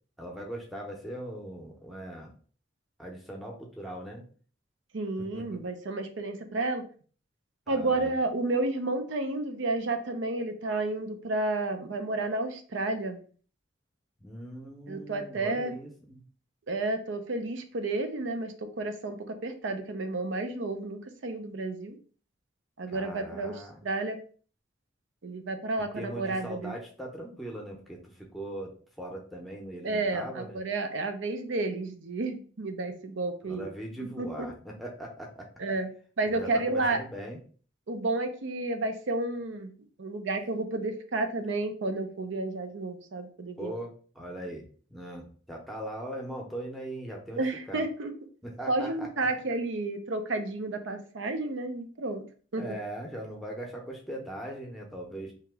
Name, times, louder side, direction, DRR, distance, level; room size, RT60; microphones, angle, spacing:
voice 1, 0.2-2.3 3.0-4.2 5.3-5.6 7.7-8.1 14.2-16.2 22.9-23.8 25.9-28.7 29.0-30.6 33.4-35.5 36.2-37.4 43.6-44.6 44.9-47.4 47.7-47.8 48.4-49.1 52.6-55.3, right 1 dB, ahead, -1 dB, 0.7 m, -40 dB
voice 2, 4.9-6.8 7.7-13.2 14.9-15.7 16.7-19.2 19.4-22.0 22.8-24.2 25.2-26.7 29.8-33.7 34.0-34.5 35.6-35.9 36.2-37.0 37.9-39.7 40.0-43.7 47.4-48.1 48.7-52.2 52.5-52.6, right 2 dB, 80° right, 7 dB, 0.5 m, -31 dB
2.9 x 2.9 x 3.4 m, 0.42 s
head